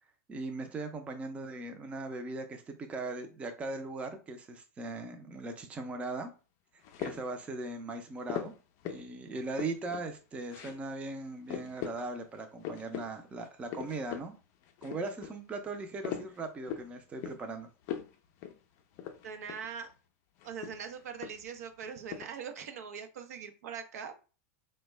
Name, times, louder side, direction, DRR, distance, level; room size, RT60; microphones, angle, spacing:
voice 1, 0.3-6.3 7.0-8.5 8.8-14.3 14.8-17.7, right 3 dB, 15° right, 6 dB, 0.4 m, -39 dB
sound 1, 6.8-7.4 8.3-9.1 9.4-10.1 10.5-10.8 11.1-11.2 11.5-12.0 12.3-13.1 13.4-14.3 14.6-15.3 15.7-16.9 17.2-17.5 17.8-18.1 18.4-18.6 18.9-19.7 20.4-21.6 21.8-22.2, left 9 dB, 45° left, 0.4 m, -40 dB
voice 2, 19.2-19.9 20.4-24.1, right 7 dB, 85° right, 7 dB, 0.6 m, -42 dB
3.4 x 2.2 x 3.1 m, 0.34 s
supercardioid pair, 145°, 8 cm